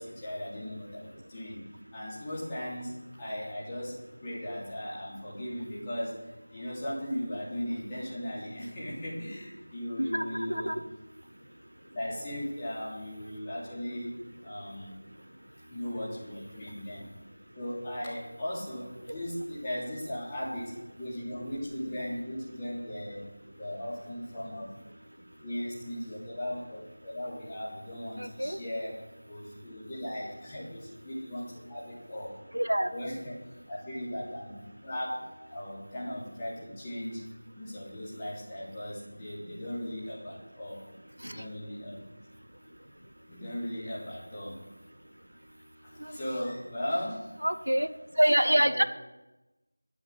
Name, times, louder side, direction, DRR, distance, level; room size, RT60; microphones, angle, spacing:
voice 1, 0.0-1.6 1.9-6.2 6.5-10.7 11.9-14.1 14.4-14.9 15.7-17.1 17.5-20.7 21.0-23.2 23.5-24.7 25.4-29.0 29.2-32.3 32.9-33.4 33.7-37.2 37.5-40.8 41.2-42.1 43.3-44.6 45.8-47.2 48.2-48.8, left 1 dB, 15° left, -9 dB, 3.5 m, -37 dB
voice 2, 10.0-10.8 28.2-28.6 32.5-32.9 41.2-41.4 46.0-46.1 47.4-47.9 48.2-48.8, equal, 70° right, 11 dB, 0.9 m, -26 dB
12.5 x 7.8 x 8.0 m, 1.0 s
figure-of-eight pair, 170°, 0 cm